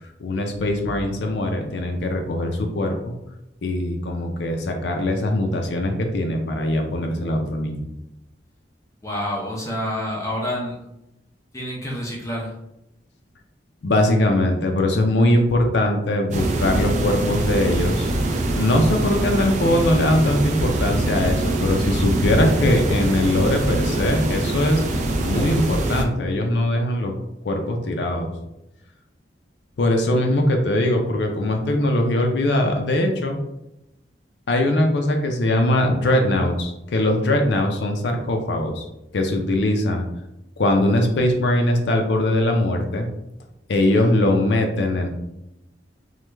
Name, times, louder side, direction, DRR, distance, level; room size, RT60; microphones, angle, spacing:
voice 1, 0.2-3.1 3.6-7.8 13.8-18.1 18.6-24.8 25.2-27.2 27.4-28.3 29.8-33.4 34.5-38.9 39.1-40.1 40.6-43.1 43.7-45.1, left 1 dB, 75° left, 3 dB, 0.5 m, -21 dB
voice 2, 9.0-10.8 11.5-12.5 43.9-44.1, left 1 dB, 15° left, -3 dB, 0.5 m, -28 dB
sound 1, 16.3-26.0, right 2 dB, 40° right, 0.4 m, -23 dB
3.1 x 2.3 x 3.3 m, 0.88 s
head